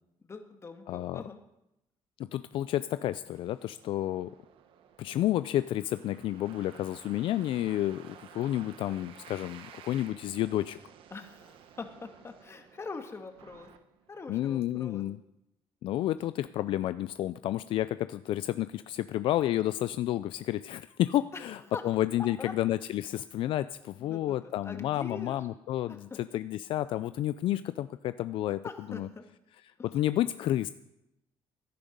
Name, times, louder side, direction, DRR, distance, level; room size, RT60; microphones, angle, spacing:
voice 1, 0.3-1.4 11.1-13.7 14.1-15.1 21.3-21.8 22.4-22.5 24.0-25.4 25.9-26.2 27.5-27.6 28.6-29.3 29.8-29.9, left 4 dB, 30° left, 5 dB, 1.8 m, -43 dB
voice 2, 0.9-1.2 2.2-4.3 5.0-10.8 14.3-15.2 15.8-21.6 21.8-28.6 28.9-29.1 29.9-30.7, left 13 dB, 70° left, 13 dB, 0.4 m, -30 dB
sound 1, 3.3-14.5, right 9 dB, 75° right, 1.0 m, -54 dB
16.0 x 10.0 x 5.3 m, 0.87 s
cardioid pair, 100°, 9 cm